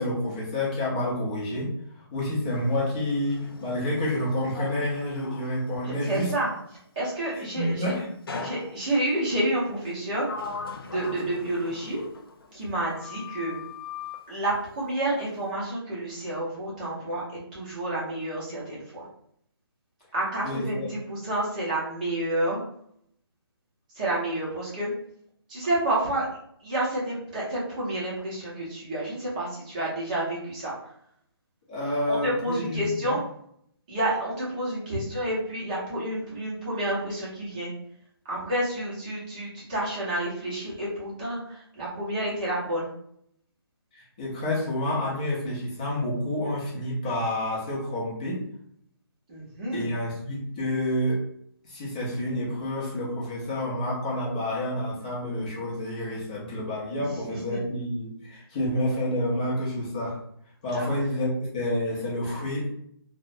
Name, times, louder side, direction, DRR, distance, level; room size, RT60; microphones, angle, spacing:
voice 1, 0.0-1.7 2.1-6.3 7.3-8.1 20.4-20.9 31.7-33.2 43.9-48.4 49.7-51.2 51.7-60.2 60.6-62.8, left 1 dB, 20° left, -6 dB, 0.6 m, -29 dB
Sliding door, 2.4-6.5 8.3-9.2 9.8-12.7 12.9-14.3, left 4 dB, 65° left, 0.4 m, -40 dB
voice 2, 5.8-6.5 7.0-7.9 8.4-12.0 12.5-13.6 14.3-17.2 17.5-19.0 20.1-22.6 23.9-24.9 25.5-26.3 26.6-30.9 32.1-33.2 33.9-37.7 38.3-42.9 49.3-50.0 57.0-57.6 60.7-61.0, right 1 dB, 20° right, -7 dB, 0.7 m, -29 dB
2.5 x 2.1 x 2.4 m, 0.68 s
hypercardioid pair, 170°, 13 cm